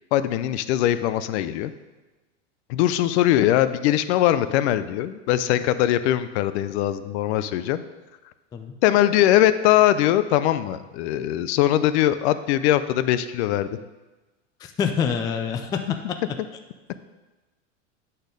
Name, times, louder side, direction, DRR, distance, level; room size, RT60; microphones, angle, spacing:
voice 1, 0.1-1.7 2.7-7.8 8.8-13.7, left 13 dB, 60° left, 13 dB, 0.6 m, -21 dB
voice 2, 14.6-15.8, left 7 dB, 10° left, 5 dB, 0.3 m, -26 dB
10.0 x 4.4 x 5.1 m, 1.2 s
supercardioid pair, 125°, 37 cm